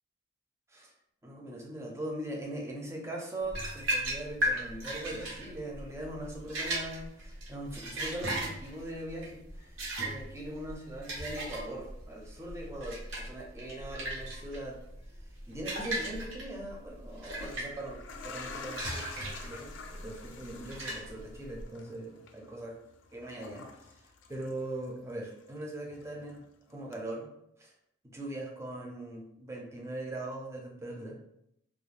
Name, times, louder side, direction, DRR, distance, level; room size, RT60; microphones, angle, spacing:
voice 1, 1.2-14.8 15.5-22.8 23.1-24.0 24.3-27.3 27.6-27.7 28.0-31.2, right 1 dB, 15° right, -1 dB, 0.4 m, -41 dB
sound 1, 3.5-21.6, right 1 dB, 85° right, 0.8 m, -37 dB
sound 2, 16.2-16.3 17.1-25.1 25.4-26.5 26.9-27.0, left 4 dB, 70° left, 0.4 m, -48 dB
2.4 x 2.2 x 3.1 m, 0.77 s
head